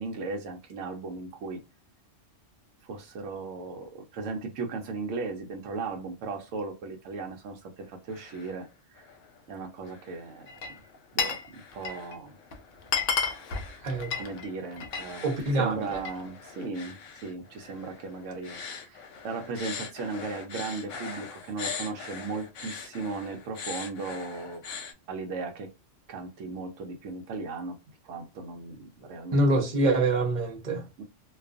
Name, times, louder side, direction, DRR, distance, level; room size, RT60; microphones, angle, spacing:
voice 1, 0.0-1.6 2.8-9.1 9.5-10.7 11.1-12.4 14.1-24.6 25.1-25.7 26.1-27.8 28.0-29.4 31.0-31.1, right 4 dB, 75° right, 0.9 m, -37 dB
sound 1, 7.8-8.6 9.0-9.4 9.8-24.9, left 6 dB, 80° left, 1.0 m, -43 dB
Glass, 10.5-11.5 11.7-12.1 12.5-12.6 12.8-15.1 15.5-16.2, left 6 dB, 60° left, 0.6 m, -31 dB
voice 2, 15.2-16.0 29.3-30.9, right 2 dB, 45° right, 0.7 m, -25 dB
2.4 x 2.3 x 2.4 m
omnidirectional pair, 1.3 m